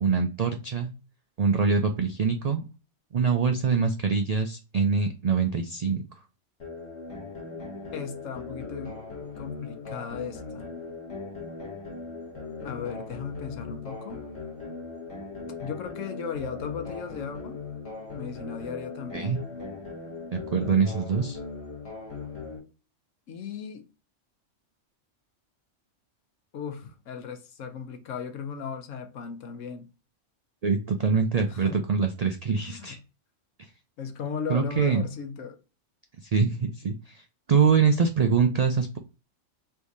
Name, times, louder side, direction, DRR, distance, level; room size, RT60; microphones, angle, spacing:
voice 1, 0.0-0.9 1.4-2.6 3.1-6.0 19.1-19.4 20.3-21.4 30.6-33.0 34.5-35.0 36.2-37.2 37.5-39.0, right 5 dB, 75° right, 0.3 m, -24 dB
sound 1, 6.6-22.6, left 4 dB, 60° left, 1.6 m, -39 dB
voice 2, 7.9-9.0 9.4-10.7 12.6-14.2 15.6-17.6 18.2-19.4 23.3-23.8 26.5-29.9 31.5-31.9 32.6-33.0 34.0-35.6, left 6 dB, 90° left, 1.1 m, -36 dB
3.4 x 2.7 x 4.6 m
omnidirectional pair, 1.3 m